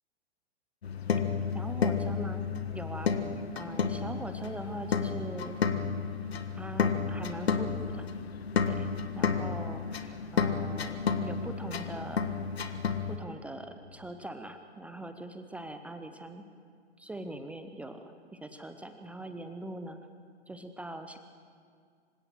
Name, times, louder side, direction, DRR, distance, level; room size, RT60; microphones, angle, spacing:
sound 1, 0.8-13.2, left 6 dB, 65° left, 1.5 m, -31 dB
voice 1, 1.5-2.4 2.7-3.1 3.6-5.6 6.5-8.1 8.7-8.9 9.2-12.3 13.1-16.5 17.0-20.0 20.5-21.2, right 1 dB, 5° right, 7 dB, 0.7 m, -42 dB
26.0 x 17.0 x 7.6 m, 2.1 s
figure-of-eight pair, 120°, 34 cm